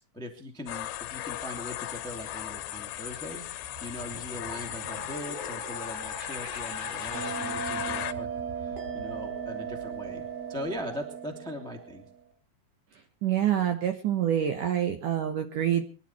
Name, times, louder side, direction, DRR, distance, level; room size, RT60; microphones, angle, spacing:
voice 1, 0.1-3.4 3.8-8.3 8.6-12.0, left 1 dB, ahead, 4 dB, 1.3 m, -40 dB
sound 1, 0.7-8.1, left 14 dB, 80° left, 3.2 m, -36 dB
sound 2, 3.5-11.0, right 2 dB, 35° right, 4.5 m, -45 dB
Bell, 7.1-12.2, right 6 dB, 55° right, 4.7 m, -37 dB
voice 2, 13.2-15.8, right 10 dB, 75° right, 7 dB, 1.9 m, -26 dB
23.0 x 12.0 x 4.4 m, 0.36 s
omnidirectional pair, 5.7 m